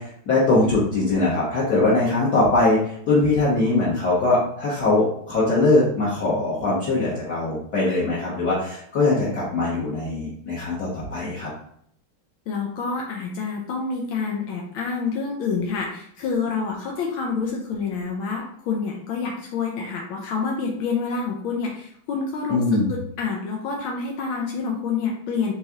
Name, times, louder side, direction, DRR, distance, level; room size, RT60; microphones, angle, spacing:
voice 1, 0.0-11.5 22.5-22.9, left 2 dB, 50° left, -9 dB, 1.7 m, -21 dB
voice 2, 12.5-22.6 22.9-25.5, left 5 dB, 80° left, -1 dB, 1.5 m, -27 dB
4.0 x 3.2 x 3.6 m, 0.67 s
omnidirectional pair, 2.3 m